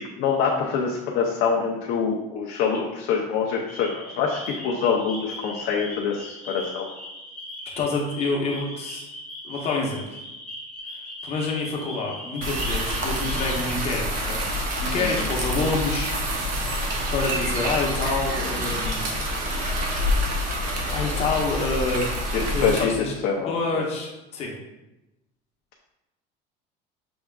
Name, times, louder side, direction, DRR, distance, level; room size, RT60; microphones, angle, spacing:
voice 1, 0.0-6.9 15.0-15.1 22.3-22.9 23.2-23.8, left 6 dB, 60° left, -1 dB, 0.6 m, -25 dB
sound 1, 3.7-13.7, left 1 dB, 5° left, 0.8 m, -39 dB
voice 2, 7.8-9.0 9.4-10.2 11.2-16.8 17.1-19.1 19.5-19.6 20.9-22.1 22.3-23.1 23.5-24.5, left 3 dB, 35° left, -1 dB, 0.9 m, -28 dB
sound 2, 12.4-22.8, equal, 45° right, 0.8 m, -27 dB
6.1 x 3.5 x 2.3 m, 0.98 s
cardioid pair, 170°, 19 cm